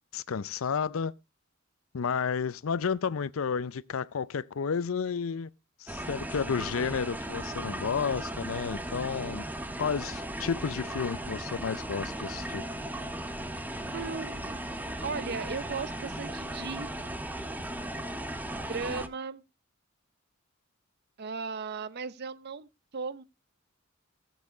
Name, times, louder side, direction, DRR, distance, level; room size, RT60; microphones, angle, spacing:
voice 1, 0.1-1.1 1.9-5.5 5.8-9.4 9.8-12.6, left 6 dB, 80° left, 0.5 m, -31 dB
sound 1, 5.9-19.1, right 1 dB, 10° right, 0.6 m, -37 dB
voice 2, 13.9-14.6 15.0-16.9 18.7-19.4 21.2-23.2, right 5 dB, 50° right, 0.6 m, -36 dB
15.5 x 7.5 x 3.8 m
head